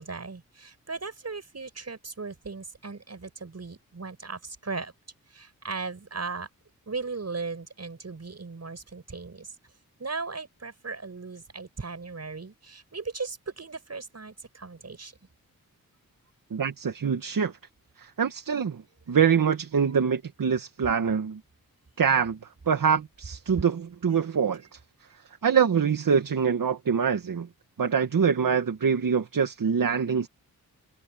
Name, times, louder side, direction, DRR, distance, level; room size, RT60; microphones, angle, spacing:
voice 1, 0.0-4.9 5.3-6.5 6.9-9.5 10.0-15.1, right 4 dB, 45° right, 7.4 m, -37 dB
voice 2, 16.5-17.5 18.0-18.8 19.1-21.4 22.0-22.4 22.7-24.6 25.4-27.5 27.8-30.3, right 6 dB, 65° right, 2.0 m, -24 dB
cardioid pair, 55°, 35 cm